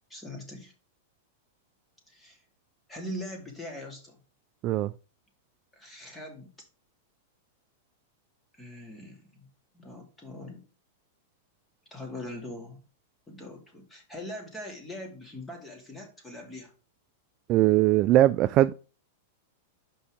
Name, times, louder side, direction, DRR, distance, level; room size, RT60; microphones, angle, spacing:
voice 1, 0.1-0.7 2.1-2.4 2.9-4.2 5.8-6.5 8.5-9.5 9.7-10.6 11.9-12.8 13.3-16.7, left 1 dB, 10° left, 2.5 m, -41 dB
voice 2, 17.5-18.7, right 14 dB, 35° right, 0.3 m, -21 dB
5.5 x 5.4 x 5.0 m
supercardioid pair, 140°, 0 cm